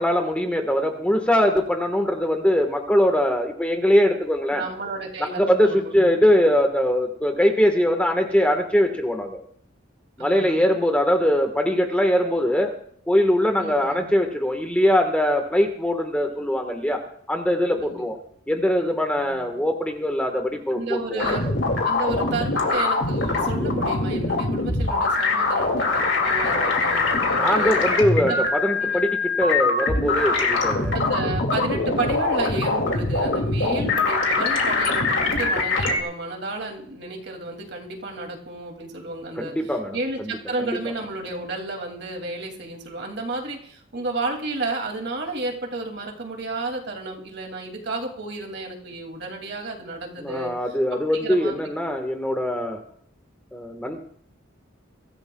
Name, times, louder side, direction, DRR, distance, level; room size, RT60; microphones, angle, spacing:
voice 1, 0.0-4.6 5.4-9.4 10.2-12.7 13.1-17.0 17.3-18.2 18.5-21.4 27.4-30.9 39.4-40.3 40.6-40.8 50.2-52.8 53.5-54.0, equal, 5° left, 4 dB, 1.3 m, -22 dB
voice 2, 4.5-6.1 10.2-10.6 13.6-14.1 17.8-17.9 19.2-19.5 20.7-27.8 28.2-28.4 28.8-29.1 30.9-39.5 39.9-50.5 51.1-51.6, right 2 dB, 60° right, 2 dB, 2.5 m, -32 dB
sound 1, 21.2-36.0, left 3 dB, 75° left, 2.5 m, -23 dB
23.5 x 14.0 x 2.3 m, 0.62 s
head